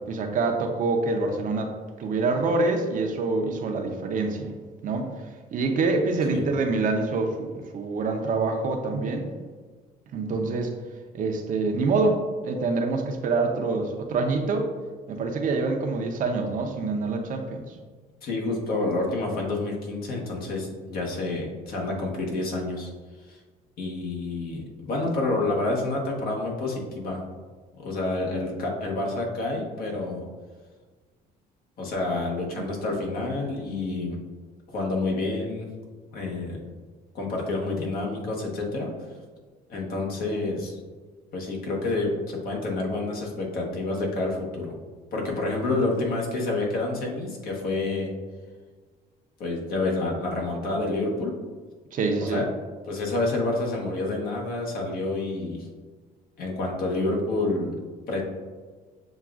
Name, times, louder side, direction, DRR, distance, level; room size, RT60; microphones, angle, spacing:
voice 1, 0.1-1.7 2.0-4.5 4.8-5.1 5.5-9.3 10.1-10.7 11.1-14.7 15.1-17.6 32.6-32.7 51.9-52.4, right 3 dB, 50° right, 4 dB, 0.6 m, -26 dB
voice 2, 18.2-22.9 23.3-23.4 23.8-27.2 27.8-30.3 31.8-34.2 34.7-35.7 36.1-36.6 37.1-38.9 39.7-40.8 41.3-44.8 45.1-48.1 49.4-51.3 52.2-52.5 52.9-55.7 56.4-57.7 58.1-58.2, left 2 dB, 60° left, -1 dB, 1.1 m, -28 dB
7.0 x 2.3 x 2.4 m, 1.4 s
cardioid pair, 110°, 17 cm